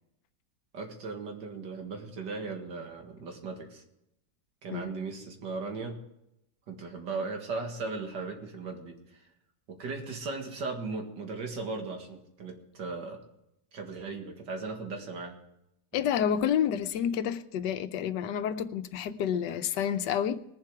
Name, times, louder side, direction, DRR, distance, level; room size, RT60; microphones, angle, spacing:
voice 1, 0.7-3.8 4.6-6.0 6.7-9.3 9.7-13.2 13.7-15.4, right 4 dB, 85° right, 2.5 m, -37 dB
voice 2, 15.9-20.4, left 9 dB, 80° left, 1.3 m, -29 dB
20.5 x 7.5 x 4.9 m
omnidirectional pair, 1.8 m